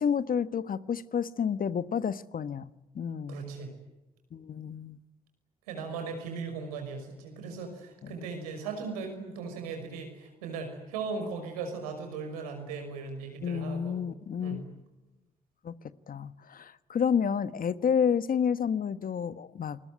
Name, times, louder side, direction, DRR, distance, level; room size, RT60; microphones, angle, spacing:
voice 1, 0.0-2.7 2.9-3.4 4.3-5.0 8.0-8.2 13.4-14.7 15.6-15.7 16.1-19.8, left 7 dB, 50° left, 15 dB, 1.3 m, -30 dB
voice 2, 3.3-3.7 5.7-14.0 14.4-14.6, right 4 dB, 85° right, 5 dB, 5.7 m, -38 dB
29.0 x 21.0 x 9.3 m, 0.98 s
hypercardioid pair, 40°, 19 cm